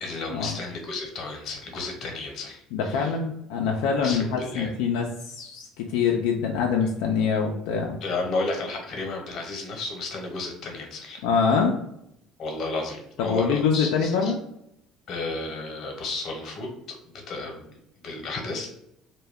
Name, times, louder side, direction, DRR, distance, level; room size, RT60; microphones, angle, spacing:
voice 1, 0.0-3.1 4.0-4.7 8.0-11.2 12.4-14.3 15.1-17.7 18.0-18.7, left 3 dB, 50° left, 2 dB, 0.8 m, -33 dB
voice 2, 2.7-8.0 11.2-11.7 13.2-14.4, left 6 dB, 85° left, 0 dB, 0.3 m, -24 dB
2.2 x 2.2 x 3.4 m, 0.78 s
cardioid pair, 115°, 0 cm